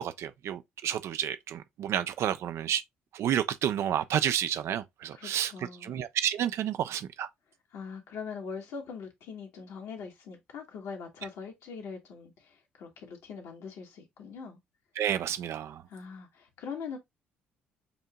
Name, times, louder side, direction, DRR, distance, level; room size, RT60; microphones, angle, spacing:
voice 1, 0.0-2.8 3.1-5.5 5.8-7.3 15.0-15.8, right 10 dB, 55° right, 0.5 m, -30 dB
voice 2, 5.1-5.9 7.7-14.6 15.9-17.0, left 5 dB, 60° left, 1.4 m, -42 dB
6.9 x 2.7 x 2.2 m
figure-of-eight pair, 45°, 6 cm